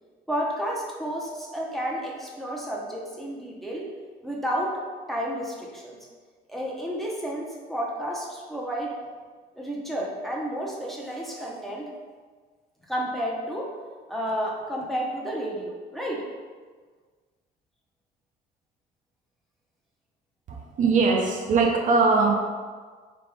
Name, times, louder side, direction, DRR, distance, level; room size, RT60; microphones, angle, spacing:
voice 1, 0.3-3.9 4.2-4.7 5.1-6.0 6.5-8.9 9.6-11.9 12.9-13.7 14.1-16.2, equal, ahead, -4 dB, 0.8 m, -31 dB
voice 2, 20.5-22.4, right 4 dB, 50° right, 1 dB, 0.6 m, -21 dB
3.4 x 3.0 x 4.7 m, 1.5 s
cardioid pair, 110°, 17 cm